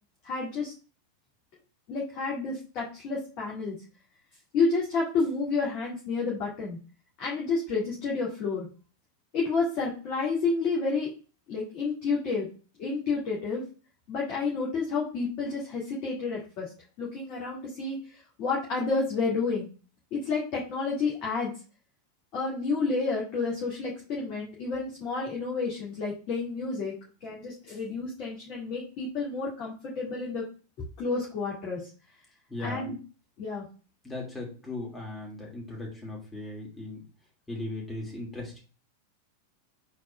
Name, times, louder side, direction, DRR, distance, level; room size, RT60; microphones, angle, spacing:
voice 1, 0.2-0.7 1.9-3.7 4.5-6.8 7.2-8.7 9.3-11.1 11.5-12.5 12.8-13.6 14.1-16.7 17.0-19.7 20.1-21.5 22.3-26.9 27.2-30.4 30.8-31.9 32.6-33.0 33.4-33.6, left 4 dB, 40° left, -4 dB, 2.2 m, -30 dB
voice 2, 32.5-32.9 34.0-37.1 37.5-38.6, left 2 dB, 10° left, -2 dB, 2.7 m, -37 dB
4.8 x 4.2 x 5.0 m, 0.36 s
figure-of-eight pair, 90°, 0 cm